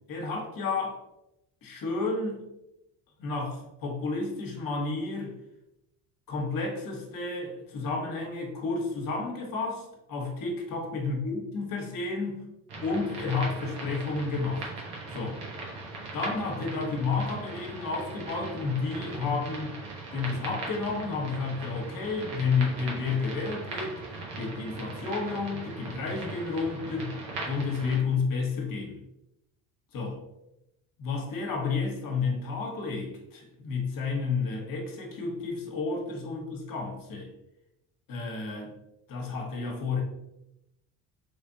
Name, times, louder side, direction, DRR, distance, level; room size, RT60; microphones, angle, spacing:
voice 1, 0.1-1.0 1.6-2.4 3.2-5.3 6.3-12.4 12.8-14.7 15.1-15.4 16.1-19.7 20.1-24.0 24.4-27.1 27.4-29.0 29.9-30.1 31.0-37.3 38.1-38.7 39.1-40.0, left 4 dB, 55° left, 1 dB, 1.1 m, -31 dB
sound 1, 12.7-28.0, right 3 dB, 85° right, 1.2 m, -39 dB
3.4 x 3.3 x 2.7 m, 0.88 s
cardioid pair, 110°, 40 cm